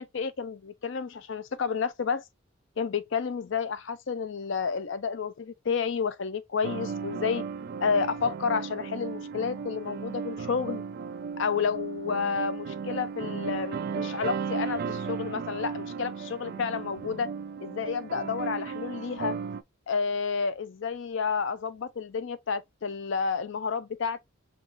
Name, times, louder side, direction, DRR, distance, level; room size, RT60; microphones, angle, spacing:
voice 1, 0.0-2.2 2.8-7.4 7.8-10.8 11.4-17.3 17.6-19.4 19.9-24.2, left 5 dB, 60° left, 0.5 m, -30 dB
sound 1, 6.6-19.6, right 6 dB, 45° right, 0.3 m, -35 dB
5.1 x 2.4 x 3.0 m
head